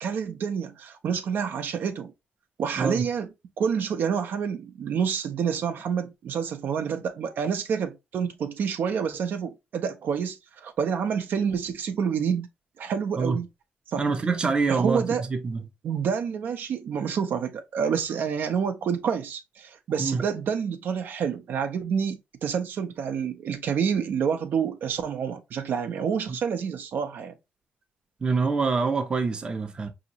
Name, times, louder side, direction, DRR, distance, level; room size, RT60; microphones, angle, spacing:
voice 1, 0.0-2.1 2.6-3.3 3.6-12.5 12.8-13.5 13.9-14.1 14.7-15.2 15.8-27.3, right 7 dB, 70° right, 0.6 m, -28 dB
voice 2, 14.0-15.0 15.3-15.6 20.0-20.2 28.2-29.9, right 4 dB, 25° right, 0.6 m, -25 dB
5.0 x 2.8 x 2.8 m
wide cardioid pair, 155°, 3 cm